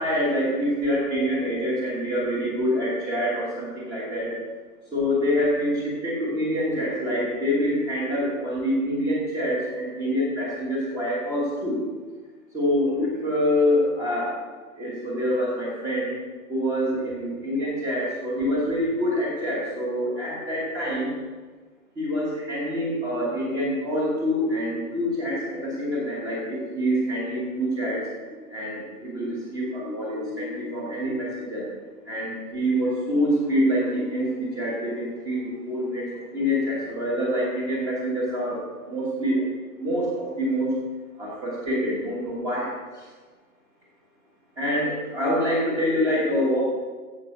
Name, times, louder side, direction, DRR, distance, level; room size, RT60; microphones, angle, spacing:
voice 1, 0.0-4.4 4.9-11.8 12.5-14.4 14.8-16.1 16.5-21.1 22.0-28.1 28.5-31.6 32.1-36.1 36.3-39.4 39.8-40.8 41.2-43.1 44.6-46.6, equal, 5° right, -5 dB, 1.2 m, -26 dB
sound 1, 24.5-28.0 28.3-32.4, left 3 dB, 15° left, 0.6 m, -41 dB
15.0 x 5.5 x 6.5 m, 1.4 s
hypercardioid pair, 180°, 46 cm